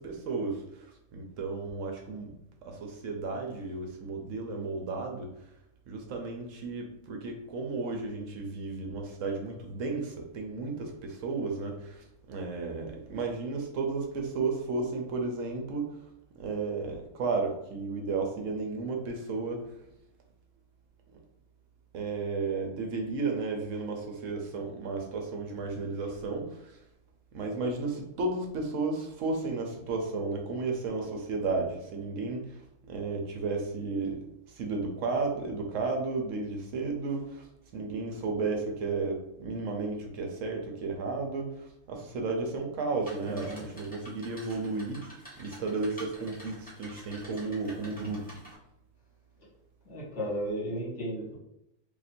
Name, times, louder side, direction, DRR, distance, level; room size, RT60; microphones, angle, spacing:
voice 1, 0.0-2.4 2.6-5.3 5.9-16.0 16.4-19.7 21.9-26.8 27.3-37.5 37.7-48.3, right 3 dB, 65° right, 2 dB, 1.0 m, -33 dB
sound 1, 43.0-48.5, equal, 5° left, 0.9 m, -49 dB
voice 2, 43.2-43.6 49.8-51.3, equal, 55° left, -6 dB, 1.5 m, -34 dB
2.8 x 2.5 x 4.2 m, 0.82 s
omnidirectional pair, 1.5 m